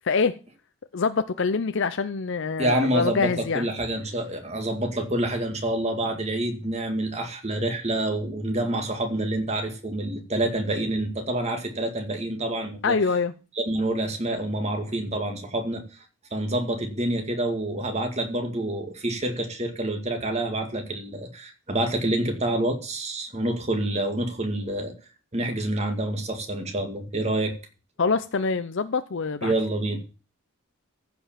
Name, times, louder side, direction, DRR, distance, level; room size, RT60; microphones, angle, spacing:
voice 1, 0.9-3.6 12.8-13.3 28.0-29.5, left 4 dB, 60° left, 0.6 m, -25 dB
voice 2, 2.6-13.0 13.6-15.8 16.3-24.9 25.3-27.5 29.4-30.0, right 1 dB, 30° right, 2.1 m, -27 dB
15.0 x 5.2 x 7.3 m
head